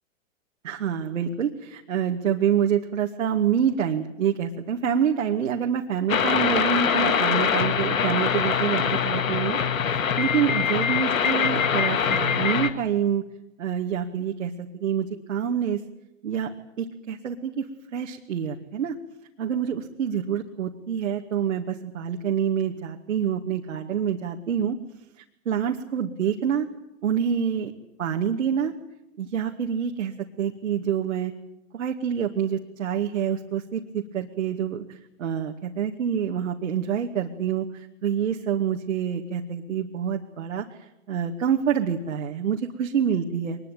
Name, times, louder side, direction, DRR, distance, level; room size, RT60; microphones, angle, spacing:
voice 1, 0.6-9.6 10.2-13.2 13.6-15.8 16.2-16.5 16.8-17.7 17.9-18.9 19.4-24.8 25.2-26.7 27.0-27.7 28.0-28.7 29.2-31.3 31.7-40.7 41.1-43.6, right 8 dB, 70° right, 2 dB, 2.4 m, -27 dB
sound 1, 6.1-12.7, left 7 dB, 80° left, 2.2 m, -23 dB
23.5 x 21.0 x 9.2 m, 0.85 s
hypercardioid pair, 140°, 40 cm